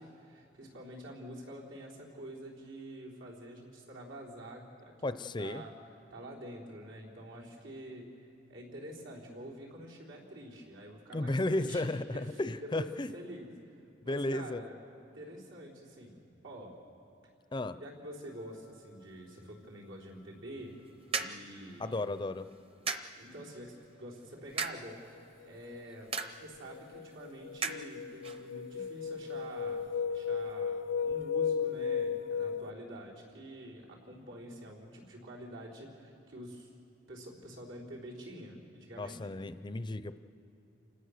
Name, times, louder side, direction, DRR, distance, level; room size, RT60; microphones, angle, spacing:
voice 1, 0.0-5.7 6.1-8.1 8.5-12.9 13.1-13.5 14.0-16.2 16.4-16.7 17.8-20.8 21.1-22.0 23.2-25.0 25.4-36.7 37.1-39.2, right 1 dB, 90° right, -4 dB, 4.1 m, -47 dB
voice 2, 5.0-5.6 11.1-13.1 14.0-14.6 17.5-17.8 21.8-22.5 39.0-40.2, left 2 dB, 25° left, 12 dB, 0.5 m, -34 dB
sound 1, 20.6-30.0, right 4 dB, 30° right, 0.8 m, -42 dB
sound 2, 25.6-26.0 26.4-32.7, left 6 dB, 70° left, 0.6 m, -35 dB
28.5 x 17.0 x 6.6 m, 2.9 s
head